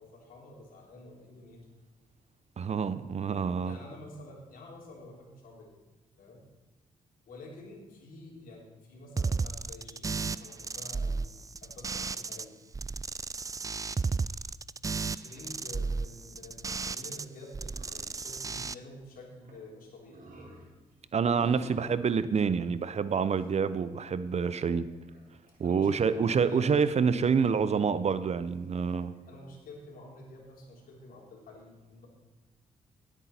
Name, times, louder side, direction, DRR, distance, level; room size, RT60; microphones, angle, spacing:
voice 1, 0.0-1.7 3.6-5.8 6.2-6.4 7.2-11.2 11.6-12.5 15.1-20.2 21.5-22.1 25.6-27.0 29.3-32.1, left 1 dB, 75° left, -1 dB, 3.3 m, -49 dB
voice 2, 2.6-3.8 21.1-24.9 25.6-29.1, right 6 dB, 50° right, 14 dB, 0.7 m, -27 dB
sound 1, 9.2-12.4 12.7-17.2 17.5-18.7, right 4 dB, 25° right, 0.4 m, -34 dB
sound 2, 17.7-18.7 19.1-19.2 19.4-19.7 20.0-22.1 23.3-23.6 24.0-24.1 24.4-27.9 28.4-29.4, right 2 dB, 65° right, 3.4 m, -54 dB
17.0 x 8.3 x 4.4 m, 1.2 s
supercardioid pair, 55°, 15 cm